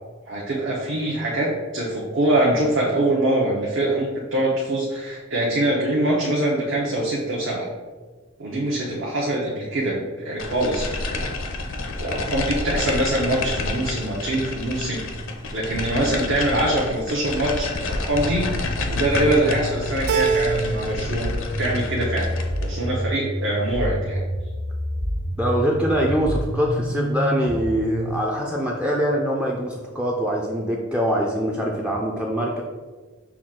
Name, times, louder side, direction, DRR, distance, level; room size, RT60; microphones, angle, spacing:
voice 1, 0.3-7.6 8.4-11.2 12.0-15.0 15.5-18.5 18.9-21.3 21.6-22.3 22.6-24.2, right 1 dB, 65° right, -4 dB, 0.7 m, -23 dB
sound 1, 10.4-22.7, left 3 dB, 65° left, 0.5 m, -29 dB
sound 2, 18.1-28.1, equal, 45° right, 1.1 m, -29 dB
Keyboard (musical), 20.1-21.2 21.5-22.2, right 6 dB, 90° right, 0.4 m, -25 dB
voice 2, 25.4-32.6, equal, 5° right, -2 dB, 0.3 m, -23 dB
5.8 x 2.3 x 3.7 m, 1.4 s
head